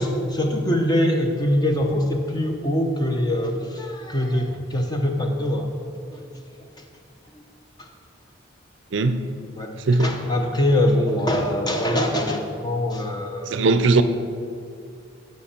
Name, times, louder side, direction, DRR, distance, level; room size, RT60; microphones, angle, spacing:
voice 1, 0.0-5.7 6.1-6.2 7.3-7.4 7.8-7.9 9.5-13.6, left 1 dB, 20° left, 2 dB, 0.8 m, -23 dB
voice 2, 8.9-9.2 9.9-10.1 13.5-14.0, right 3 dB, 65° right, 10 dB, 0.5 m, -18 dB
13.5 x 5.4 x 4.3 m, 2.4 s
head